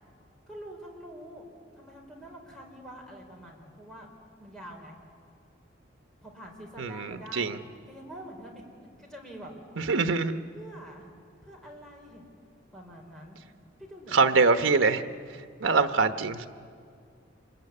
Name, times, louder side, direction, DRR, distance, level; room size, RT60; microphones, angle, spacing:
voice 1, 0.5-1.4 1.7-4.1 4.4-5.0 6.2-9.5 10.5-11.1 11.4-12.2 12.7-13.4 13.8-14.9, right 1 dB, ahead, -1 dB, 4.5 m, -46 dB
voice 2, 6.8-7.6 9.8-10.4 14.1-15.0 15.6-16.5, right 4 dB, 85° right, 9 dB, 1.1 m, -24 dB
26.5 x 22.0 x 9.8 m, 2.3 s
head